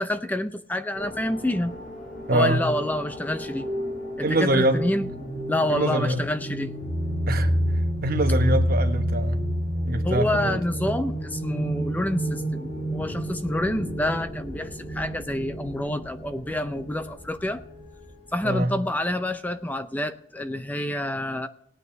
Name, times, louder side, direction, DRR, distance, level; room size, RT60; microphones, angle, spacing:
voice 1, 0.0-1.8 2.3-3.7 4.2-5.1 5.5-6.7 10.0-17.6 18.3-21.5, left 1 dB, 10° left, 0.5 m, -28 dB
sound 1, 0.9-18.1, equal, 45° left, 4.6 m, -29 dB
voice 2, 2.3-2.6 4.2-4.9 5.7-6.2 7.3-7.5 8.0-9.4 9.9-10.6 18.4-18.7, right 1 dB, 55° right, 1.2 m, -24 dB
18.5 x 9.5 x 3.2 m
head